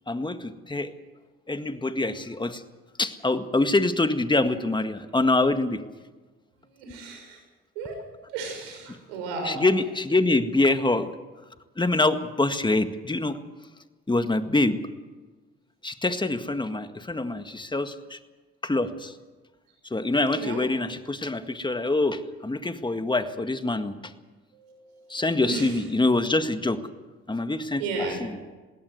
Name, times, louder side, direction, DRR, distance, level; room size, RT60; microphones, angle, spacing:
voice 1, 0.1-0.9 1.5-2.6 3.0-5.8 9.4-11.1 11.8-13.4 14.1-14.8 15.8-18.2 18.6-19.1 19.9-24.0 25.1-26.8 27.3-28.3, left 2 dB, 15° left, 9 dB, 1.9 m, -25 dB
voice 2, 6.7-7.4 7.7-8.0 8.3-9.6 20.3-20.6 24.5-24.9 25.4-25.7 27.8-28.2, right 3 dB, 90° right, 4 dB, 6.5 m, -33 dB
21.5 x 17.0 x 8.1 m, 1.3 s
hypercardioid pair, 60°, 29 cm